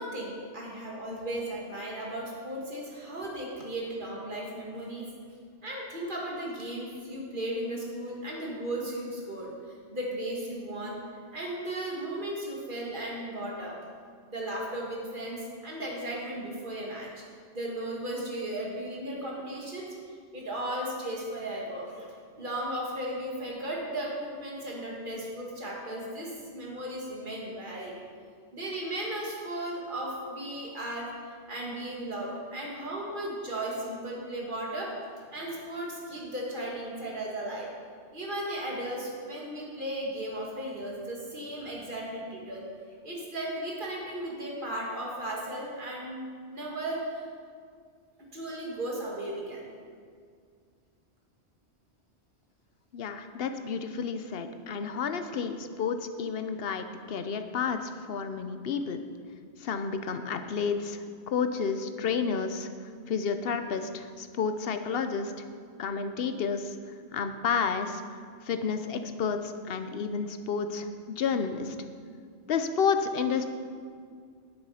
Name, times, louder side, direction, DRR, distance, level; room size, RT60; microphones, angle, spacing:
voice 1, 0.0-5.1 5.6-9.5 9.9-11.0 11.3-13.7 14.3-17.1 17.5-19.9 20.3-27.9 28.5-31.1 31.5-34.9 35.3-37.7 38.1-42.7 43.0-46.2 46.5-47.3 48.3-49.6, right 1 dB, 45° right, -3 dB, 2.2 m, -35 dB
voice 2, 52.9-59.0 59.6-62.7 63.1-65.3 65.8-66.8 67.1-68.0 68.4-70.9 71.2-71.7 72.5-73.5, left 6 dB, 60° left, 8 dB, 0.9 m, -30 dB
10.5 x 7.6 x 5.6 m, 2.1 s
omnidirectional pair, 1.2 m